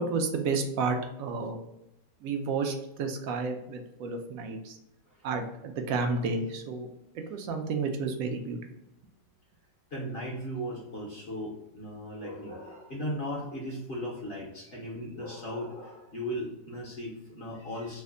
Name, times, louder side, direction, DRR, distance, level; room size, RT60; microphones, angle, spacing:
voice 1, 0.0-1.6 2.2-4.8 5.2-6.9 7.1-8.6, right 4 dB, 75° right, 4 dB, 0.8 m, -31 dB
voice 2, 9.9-18.0, equal, 50° left, -4 dB, 0.8 m, -37 dB
3.2 x 2.1 x 3.6 m, 0.89 s
omnidirectional pair, 1.9 m